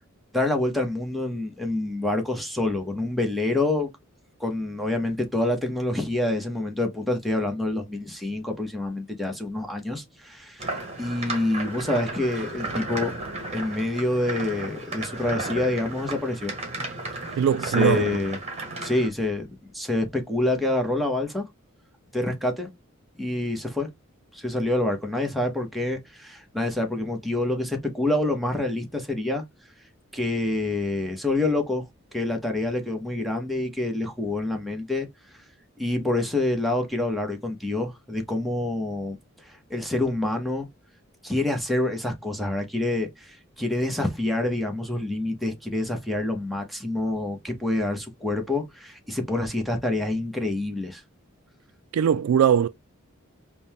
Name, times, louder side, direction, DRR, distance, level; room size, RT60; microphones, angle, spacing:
voice 1, 0.3-3.9 4.4-13.1 13.5-16.5 17.3-17.4 17.6-18.4 18.8-21.4 22.1-22.7 23.2-23.9 24.3-29.4 30.1-35.1 35.8-39.2 39.5-40.7 41.2-51.0, left 2 dB, ahead, 0.8 m, -27 dB
sound 1, 10.6-19.1, right 2 dB, 30° right, 1.2 m, -33 dB
voice 2, 17.4-18.2 51.9-52.7, right 8 dB, 80° right, 0.3 m, -21 dB
5.2 x 2.2 x 2.8 m
head